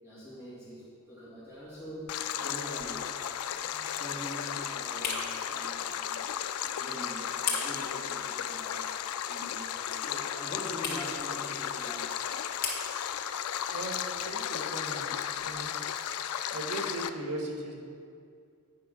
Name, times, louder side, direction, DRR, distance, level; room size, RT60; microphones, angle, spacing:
voice 1, 0.0-3.0 3.5-6.2 6.7-8.9 9.3-12.1, equal, 10° right, -10 dB, 2.1 m, -44 dB
sound 1, 1.5-16.3, left 5 dB, 45° left, 1.4 m, -43 dB
Stream, 2.1-17.1, left 9 dB, 80° left, 0.4 m, -35 dB
voice 2, 14.2-15.7 16.5-17.7, right 1 dB, 85° right, 0 dB, 1.6 m, -38 dB
9.2 x 5.6 x 5.3 m, 2.3 s
head